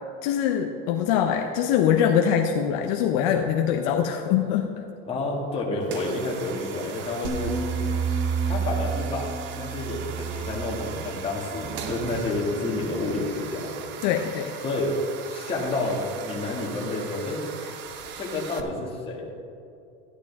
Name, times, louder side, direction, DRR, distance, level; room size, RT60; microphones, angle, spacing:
voice 1, 0.2-4.8 14.0-14.6, left 9 dB, 55° left, 4 dB, 0.7 m, -23 dB
voice 2, 5.1-7.6 8.4-13.7 14.6-14.9 15.3-17.4 18.2-19.3, left 2 dB, 20° left, -3 dB, 1.9 m, -29 dB
sound 1, 5.8-18.6, right 7 dB, 35° right, 0.8 m, -39 dB
sound 2, 7.2-12.5, right 5 dB, 75° right, 2.0 m, -30 dB
13.0 x 11.0 x 3.5 m, 2.6 s
supercardioid pair, 160°, 30 cm